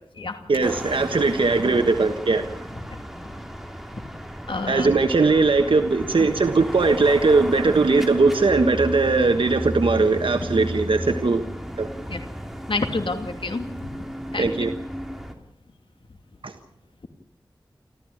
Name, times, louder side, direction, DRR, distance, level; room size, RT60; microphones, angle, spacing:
voice 1, 0.5-2.6 4.7-11.4 11.8-11.9 14.4-14.7 16.4-16.5, right 3 dB, 80° right, 6 dB, 1.4 m, -20 dB
sound 1, 0.6-15.3, equal, 5° right, 3.3 m, -34 dB
voice 2, 4.5-4.9 12.1-12.2 12.7-13.9 14.3-14.5, left 3 dB, 80° left, 6 dB, 2.6 m, -28 dB
29.5 x 14.0 x 8.7 m, 0.72 s
wide cardioid pair, 70°, 9 cm